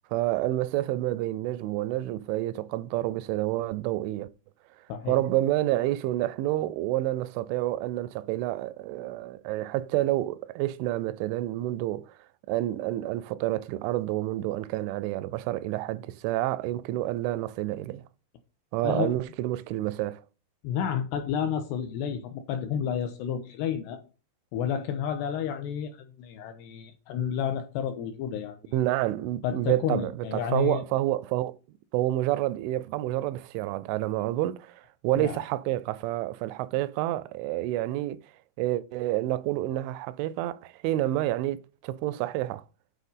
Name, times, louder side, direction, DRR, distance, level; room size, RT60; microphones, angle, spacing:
voice 1, 0.1-4.3 5.1-12.1 12.5-18.0 18.7-20.2 28.7-31.6 31.9-38.2 38.6-42.6, right 15 dB, 85° right, 2.9 m, -29 dB
voice 2, 18.8-19.1 20.6-24.0 24.5-28.8 29.4-30.8 35.2-35.4, left 8 dB, 80° left, 2.5 m, -31 dB
9.3 x 3.9 x 5.4 m
omnidirectional pair, 5.5 m